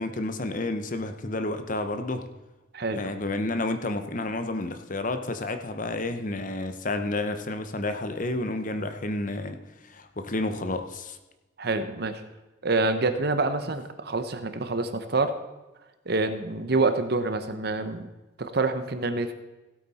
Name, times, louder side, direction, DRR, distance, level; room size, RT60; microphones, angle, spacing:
voice 1, 0.0-2.2 2.9-11.2, left 2 dB, 40° left, 8 dB, 0.8 m, -30 dB
voice 2, 11.6-12.2 12.6-15.3 16.1-18.1 18.4-19.3, right 3 dB, 55° right, 9 dB, 0.9 m, -26 dB
16.5 x 8.4 x 4.2 m, 1.1 s
head